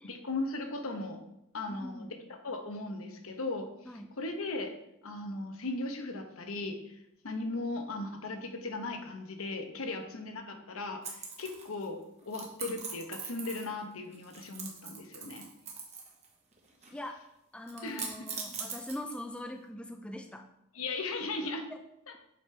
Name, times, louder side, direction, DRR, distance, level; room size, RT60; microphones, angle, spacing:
voice 1, 0.0-1.2 1.5-2.2 2.4-3.7 4.2-4.7 5.0-7.0 7.2-15.4 17.8-18.3 20.7-21.7 22.1-22.2, left 2 dB, 70° left, 5 dB, 0.9 m, -37 dB
voice 2, 1.7-2.1 3.9-4.1 16.9-17.2 17.5-20.5 21.7-21.8, left 1 dB, 5° left, 5 dB, 0.3 m, -42 dB
sound 1, 11.0-11.8 12.3-13.8 14.1-16.3 16.5-17.1 17.7-19.4, right 5 dB, 30° right, 1.1 m, -41 dB
7.8 x 5.1 x 3.3 m, 0.81 s
head